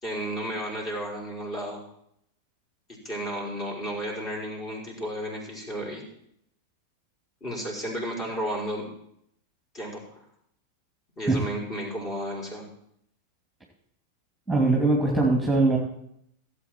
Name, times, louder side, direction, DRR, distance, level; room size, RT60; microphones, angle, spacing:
voice 1, 0.0-1.8 3.0-6.0 7.4-8.9 9.7-10.2 11.2-12.7, equal, 30° left, -1 dB, 5.0 m, -33 dB
voice 2, 14.5-15.8, right 2 dB, ahead, -1 dB, 2.7 m, -21 dB
17.0 x 8.3 x 4.5 m, 0.73 s
figure-of-eight pair, 90°, 0 cm